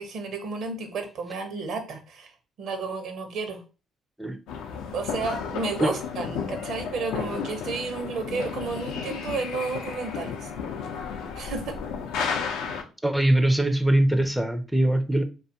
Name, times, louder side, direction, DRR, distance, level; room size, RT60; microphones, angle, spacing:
voice 1, 0.0-2.3 2.6-3.6 4.9-10.5 11.4-11.6, right 4 dB, 70° right, 0.7 m, -32 dB
sound 1, 4.5-12.8, left 6 dB, 85° left, 0.4 m, -33 dB
voice 2, 13.0-15.2, right 1 dB, 5° right, 0.3 m, -22 dB
2.4 x 2.3 x 2.7 m
supercardioid pair, 75°, 0 cm